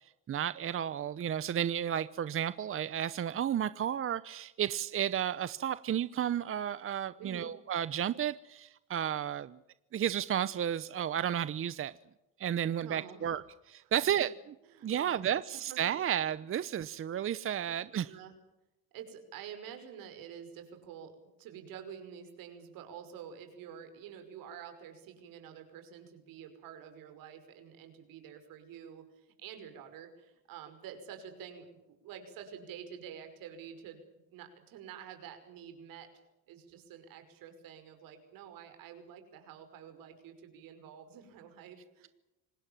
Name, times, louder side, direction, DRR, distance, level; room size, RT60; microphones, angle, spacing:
voice 1, 0.3-9.6 9.9-11.9 12.4-13.4 13.7-14.3 14.8-18.1, right 10 dB, 40° right, 15 dB, 0.8 m, -32 dB
voice 2, 7.2-7.5 12.8-13.4 13.8-13.9 14.7-16.4 18.1-18.3 18.9-34.0 34.3-36.1 36.5-42.1, right 8 dB, 75° right, 7 dB, 5.7 m, -48 dB
26.0 x 19.5 x 7.4 m, 0.94 s
cardioid pair, 100°, 34 cm